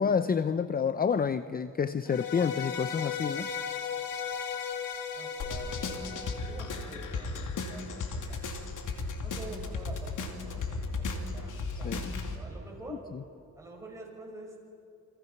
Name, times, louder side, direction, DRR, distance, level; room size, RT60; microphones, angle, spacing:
voice 1, 0.0-3.5 11.8-12.1, left 6 dB, 25° left, 12 dB, 0.6 m, -28 dB
sound 1, 2.1-7.3, left 7 dB, 85° left, 2.3 m, -36 dB
voice 2, 5.1-8.4 9.2-13.0 13.5-14.6, right 2 dB, 10° right, -1 dB, 6.8 m, -47 dB
sound 2, 5.4-12.4, left 3 dB, 65° left, 2.8 m, -35 dB
29.0 x 25.0 x 6.0 m, 2.5 s
cardioid pair, 115°, 33 cm